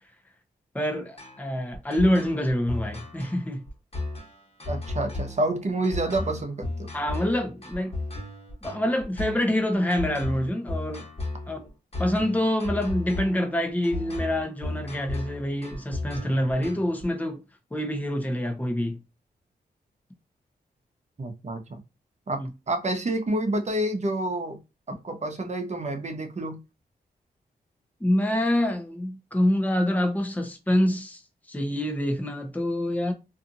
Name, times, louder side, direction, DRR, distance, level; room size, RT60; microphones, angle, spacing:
voice 1, 0.7-3.6 6.9-7.9 8.6-11.0 11.5-11.7 12.0-17.4 17.7-19.0 22.3-22.5 28.0-31.2 31.5-33.1, left 1 dB, 10° left, 0.8 m, -26 dB
sound 1, 1.2-17.0, left 2 dB, 35° left, 1.3 m, -35 dB
voice 2, 4.7-6.9 21.2-21.8 22.3-24.6 24.9-26.6, right 1 dB, 45° right, 0.8 m, -28 dB
2.6 x 2.5 x 2.5 m
cardioid pair, 60°, 17 cm